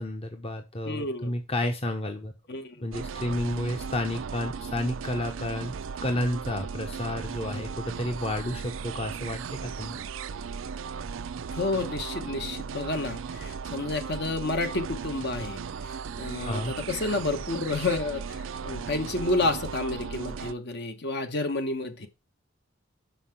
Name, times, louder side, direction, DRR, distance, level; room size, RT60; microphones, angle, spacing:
voice 1, 0.0-2.3 2.8-10.0 16.4-16.7, left 1 dB, 30° left, 0.9 m, -31 dB
voice 2, 0.8-1.3 2.5-2.9 7.5-7.7 11.5-22.1, left 2 dB, 60° left, 1.2 m, -30 dB
sound 1, 2.9-20.5, right 6 dB, 80° right, 0.4 m, -37 dB
5.8 x 5.7 x 5.7 m
head